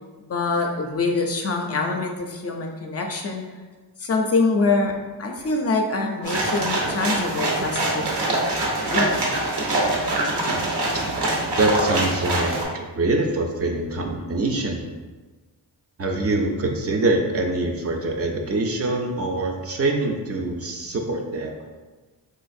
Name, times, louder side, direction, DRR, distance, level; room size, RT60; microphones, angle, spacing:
voice 1, 0.2-3.4 4.0-4.9 5.2-8.5 8.9-9.3, left 3 dB, 40° left, 2 dB, 0.4 m, -25 dB
sound 1, 6.2-12.6, right 2 dB, 85° right, 0.8 m, -24 dB
voice 2, 10.9-14.8 16.0-21.5, right 2 dB, 40° right, 1 dB, 0.4 m, -24 dB
3.8 x 2.4 x 2.6 m, 1.3 s
cardioid pair, 80°, 39 cm